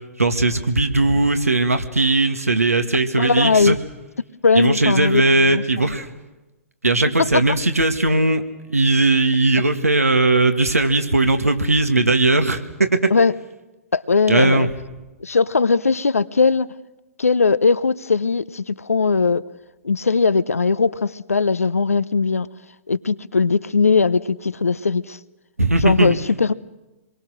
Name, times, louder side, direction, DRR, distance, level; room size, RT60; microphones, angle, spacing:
voice 1, 0.2-3.8 4.6-6.1 6.8-8.4 8.7-13.1 14.3-14.7 25.6-26.2, right 2 dB, 85° right, 7 dB, 1.9 m, -18 dB
voice 2, 3.2-3.8 4.4-6.0 7.2-7.3 13.1-13.3 13.9-14.7 15.2-16.7 17.2-19.4 19.8-22.5 22.9-25.2 25.8-26.5, left 4 dB, 80° left, 17 dB, 0.8 m, -19 dB
26.5 x 22.5 x 6.4 m, 1.1 s
figure-of-eight pair, 115°, 8 cm